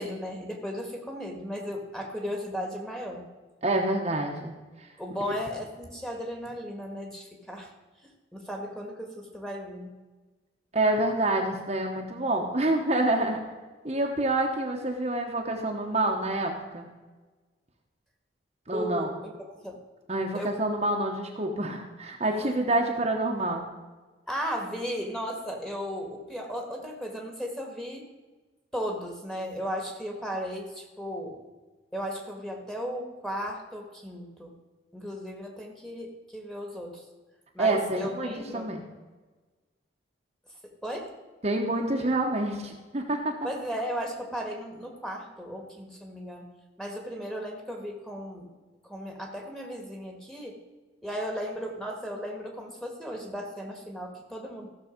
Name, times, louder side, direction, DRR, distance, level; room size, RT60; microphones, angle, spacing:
voice 1, 0.0-3.3 5.0-7.7 8.0-9.9 18.7-19.3 19.6-19.8 20.3-20.6 22.4-22.6 24.3-28.1 28.7-31.4 31.9-34.5 34.9-37.0 37.5-38.7 40.6-41.1 43.4-46.5 46.8-48.5 48.8-50.6 51.0-54.7, equal, 5° left, 0 dB, 1.6 m, -35 dB
voice 2, 3.6-4.5 4.8-4.9 10.7-13.4 13.8-16.9 18.7-19.1 20.1-23.6 37.6-38.8 41.4-43.3, right 2 dB, 35° right, 0 dB, 1.1 m, -27 dB
15.0 x 6.8 x 5.2 m, 1.3 s
head